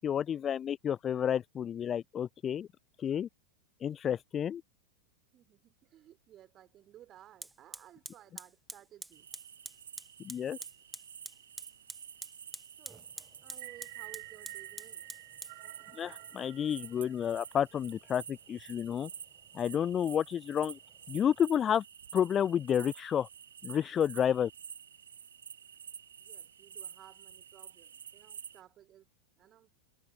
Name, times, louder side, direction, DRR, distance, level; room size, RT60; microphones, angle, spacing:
voice 1, 0.0-2.7 3.0-3.3 3.8-4.6 10.2-10.6 15.9-19.1 19.5-20.8 21.1-21.8 22.1-23.3 23.6-24.5, left 9 dB, 25° left, 0.4 m, -30 dB
voice 2, 5.3-9.3 12.8-13.1 13.4-15.1 26.2-29.1 29.4-29.7, right 12 dB, 30° right, 4.5 m, -57 dB
Fire, 6.4-6.5 7.4-21.4, right 2 dB, 5° right, 1.3 m, -50 dB
sound 1, 9.1-28.6, right 8 dB, 65° right, 1.3 m, -50 dB
sound 2, 13.5-17.8, right 28 dB, 45° right, 1.6 m, -50 dB
figure-of-eight pair, 90°, 0 cm